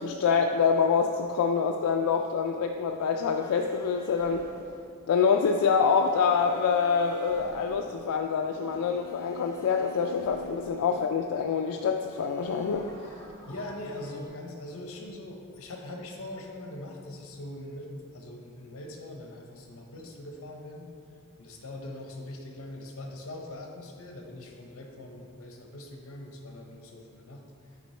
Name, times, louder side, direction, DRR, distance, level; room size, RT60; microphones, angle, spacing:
voice 1, 0.0-4.5 5.1-12.8, left 6 dB, 90° left, 3 dB, 0.3 m, -26 dB
sound 1, 2.9-11.4 12.0-14.3, left 1 dB, 15° left, 0.8 m, -47 dB
voice 2, 13.5-20.9 21.4-27.4, left 1 dB, 70° left, 2 dB, 0.8 m, -42 dB
6.0 x 4.3 x 4.3 m, 2.3 s
head